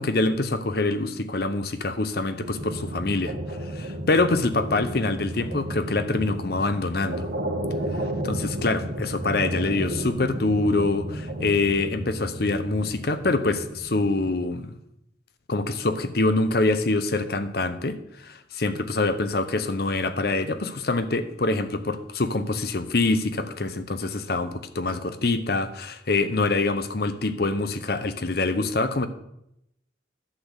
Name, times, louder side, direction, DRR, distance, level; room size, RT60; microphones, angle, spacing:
voice 1, 0.0-3.3 3.7-7.3 8.2-14.7 15.5-18.0 18.2-29.1, left 2 dB, 55° left, 11 dB, 0.8 m, -25 dB
sound 1, 2.4-14.3, right 1 dB, 75° right, 1.4 m, -33 dB
11.5 x 4.3 x 8.0 m, 0.80 s
head